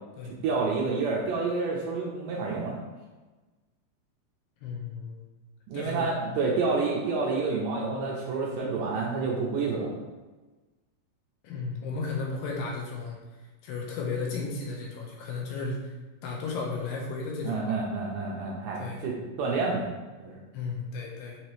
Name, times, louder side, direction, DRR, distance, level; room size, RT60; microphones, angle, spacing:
voice 1, 0.2-2.8 5.7-10.0 17.4-19.9 20.2-20.4, right 4 dB, 75° right, -3 dB, 2.0 m, -29 dB
voice 2, 4.6-5.3 5.7-6.1 11.4-13.2 13.6-15.9 16.2-17.8 18.8-19.0 20.5-21.4, left 4 dB, 80° left, -1 dB, 2.4 m, -34 dB
5.9 x 2.8 x 3.1 m, 1.2 s
omnidirectional pair, 4.2 m